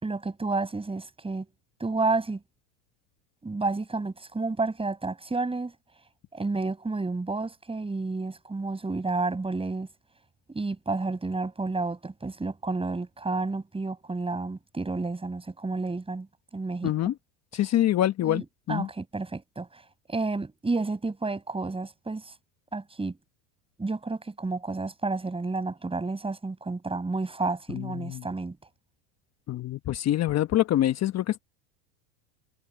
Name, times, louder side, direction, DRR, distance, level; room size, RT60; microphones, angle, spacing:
voice 1, 0.0-1.5 1.8-2.4 3.4-5.7 6.3-9.9 10.5-16.3 16.5-16.9 18.2-19.8 20.1-22.3 22.7-23.2 23.8-28.6, right 3 dB, 10° right, 5.9 m, -30 dB
voice 2, 16.8-17.1 17.5-18.9 27.7-28.2 29.5-31.4, left 13 dB, 35° left, 1.2 m, -25 dB
hypercardioid pair, 100°, 45 cm